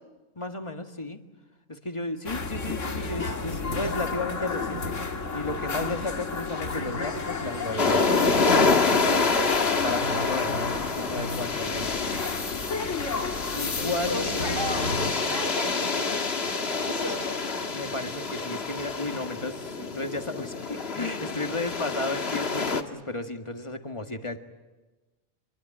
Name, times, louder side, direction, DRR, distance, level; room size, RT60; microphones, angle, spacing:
voice 1, 0.4-1.2 1.7-9.4 9.8-12.0 13.5-14.6 17.7-24.4, left 2 dB, 25° left, 6 dB, 1.8 m, -34 dB
sound 1, 2.3-15.1, left 4 dB, 80° left, 2.2 m, -32 dB
sound 2, 7.8-22.8, left 4 dB, 55° left, 1.7 m, -27 dB
voice 2, 14.1-17.6, equal, 20° right, 6 dB, 3.7 m, -36 dB
25.5 x 22.5 x 8.9 m, 1.2 s
omnidirectional pair, 1.3 m